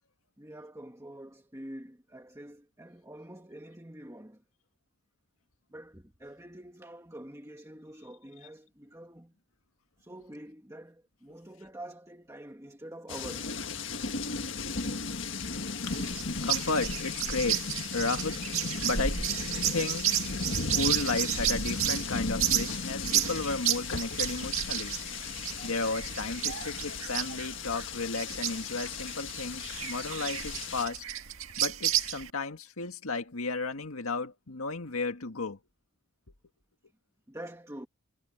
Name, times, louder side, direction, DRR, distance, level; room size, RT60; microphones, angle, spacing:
voice 1, 0.4-4.4 5.7-9.3 10.0-13.6 14.2-14.3 37.3-37.9, right 1 dB, 15° right, 1.8 m, -46 dB
sound 1, 13.1-30.9, left 4 dB, 60° left, 1.7 m, -36 dB
voice 2, 15.8-17.7 17.9-18.4 18.8-19.2 19.7-20.1 20.7-25.0 25.6-31.0 31.6-35.6, left 3 dB, 90° left, 1.9 m, -33 dB
sound 2, 15.8-32.3, right 10 dB, 80° right, 1.8 m, -32 dB
head